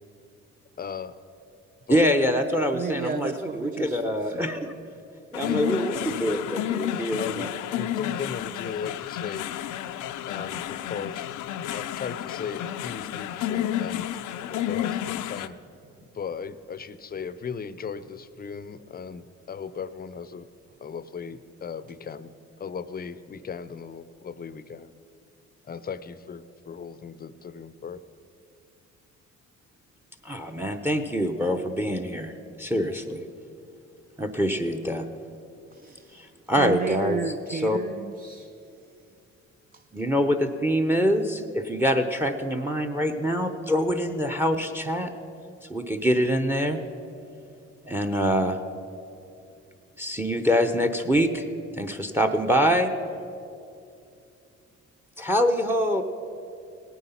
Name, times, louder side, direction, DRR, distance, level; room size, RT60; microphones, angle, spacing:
voice 1, 0.8-1.2 1.9-2.1 5.4-6.2 7.2-7.5 7.8-9.5 10.2-11.2 11.7-14.1 14.4-15.6 16.1-20.5 20.8-24.9 25.6-28.0, left 6 dB, 30° left, 14 dB, 0.6 m, -37 dB
voice 2, 1.9-4.7 5.3-7.5 30.2-32.3 32.6-33.2 34.2-35.0 36.1-37.2 37.5-37.8 39.9-45.1 45.7-46.8 47.9-48.6 50.0-51.4 51.8-52.9 55.2-56.0, equal, 5° right, 8 dB, 0.8 m, -25 dB
voice 3, 2.7-4.6 35.7-36.2 36.6-38.5 39.7-39.8, right 5 dB, 30° right, 9 dB, 0.5 m, -33 dB
sound 1, 5.3-15.5, left 11 dB, 80° left, 0.5 m, -31 dB
17.5 x 9.3 x 5.7 m, 2.6 s
cardioid pair, 90°, 30 cm